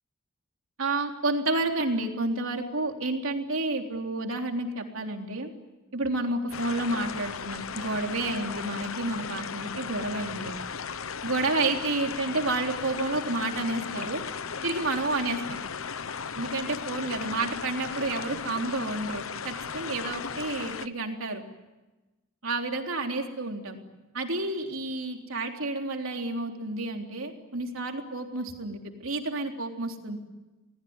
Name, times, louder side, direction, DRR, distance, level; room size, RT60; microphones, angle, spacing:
voice 1, 0.8-5.5 5.9-10.5 11.2-14.2 14.6-15.6 16.4-21.4 22.4-23.8 24.1-30.2, right 2 dB, 80° right, 3 dB, 3.6 m, -30 dB
sound 1, 6.5-20.9, left 6 dB, 90° left, 1.0 m, -36 dB
28.0 x 20.0 x 9.7 m, 1.1 s
head